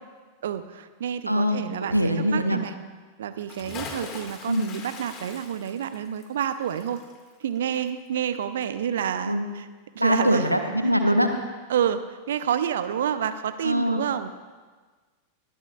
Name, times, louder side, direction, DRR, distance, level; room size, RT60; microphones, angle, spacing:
voice 1, 0.4-2.7 3.2-7.0 7.4-9.7 9.9-10.5 11.7-14.3, right 9 dB, 60° right, 12 dB, 0.7 m, -29 dB
voice 2, 1.2-2.6 4.5-4.7 9.2-9.5 10.0-11.3 13.6-14.0, equal, 90° right, 5 dB, 1.1 m, -23 dB
Bathtub (filling or washing) / Splash splatter, 3.4-8.3 8.6-8.7, left 4 dB, 30° left, 2.2 m, -42 dB
20.0 x 14.0 x 2.5 m, 1.4 s
figure-of-eight pair, 90°, 0 cm